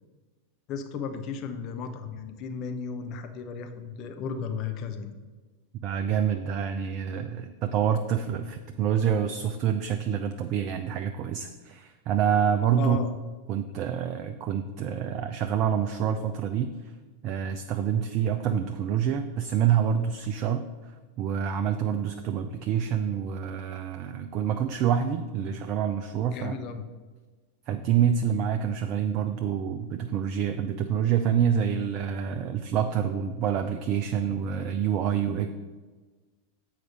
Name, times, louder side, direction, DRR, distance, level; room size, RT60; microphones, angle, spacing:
voice 1, 0.7-5.2 12.8-13.1 25.4-25.5 26.3-26.8, left 6 dB, 40° left, 7 dB, 0.8 m, -35 dB
voice 2, 5.8-13.0 13.5-16.9 17.2-26.5 27.7-35.5, right 8 dB, 40° right, 7 dB, 0.4 m, -27 dB
7.7 x 4.8 x 5.3 m, 1.3 s
figure-of-eight pair, 90°, 0 cm